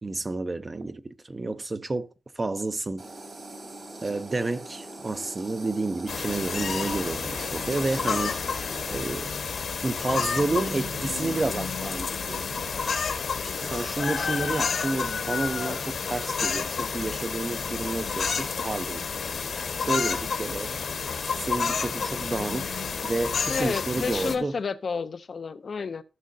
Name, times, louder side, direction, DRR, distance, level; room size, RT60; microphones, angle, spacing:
voice 1, 0.0-2.1 2.4-3.0 4.0-9.3 9.8-12.5 13.4-19.0 19.8-20.7 21.4-24.6, right 2 dB, 30° right, 0.7 m, -30 dB
sound 1, 3.0-9.0, right 2 dB, 55° right, 2.5 m, -41 dB
sound 2, 6.1-24.4, left 5 dB, 75° left, 1.3 m, -30 dB
voice 2, 23.5-26.0, left 5 dB, 55° left, 0.5 m, -31 dB
15.5 x 6.2 x 2.7 m
wide cardioid pair, 105°, 0 cm